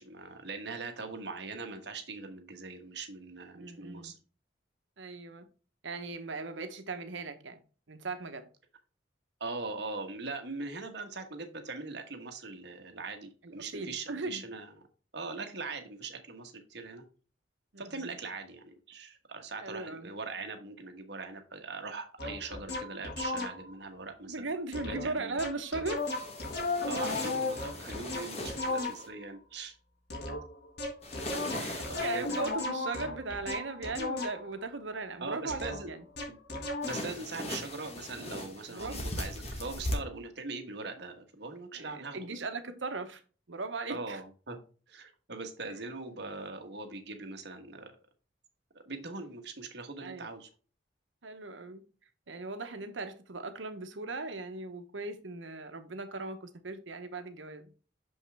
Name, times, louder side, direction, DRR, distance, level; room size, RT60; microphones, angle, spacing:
voice 1, 0.0-4.2 9.4-14.7 15.1-17.0 17.8-24.5 24.8-25.4 26.9-29.8 31.3-32.5 35.2-35.9 36.8-42.4 43.9-44.6 44.9-47.9 48.9-50.5, right 3 dB, 60° right, 1.2 m, -41 dB
voice 2, 3.5-4.1 5.0-5.4 5.8-7.6 7.9-8.4 13.4-14.4 17.7-18.2 19.6-20.1 24.2-26.0 31.6-36.0 38.7-39.1 41.8-43.2 43.5-44.2 50.0-50.3 51.2-51.8 52.3-57.6, right 3 dB, 80° right, 1.0 m, -38 dB
sound 1, 22.2-23.8 24.7-25.1 25.4-29.3 30.1-34.6 35.5-37.1, left 2 dB, 55° left, 1.8 m, -35 dB
sound 2, 26.0-29.1 31.0-32.5 36.8-39.9, left 1 dB, 35° left, 1.4 m, -39 dB
6.5 x 5.4 x 3.4 m
head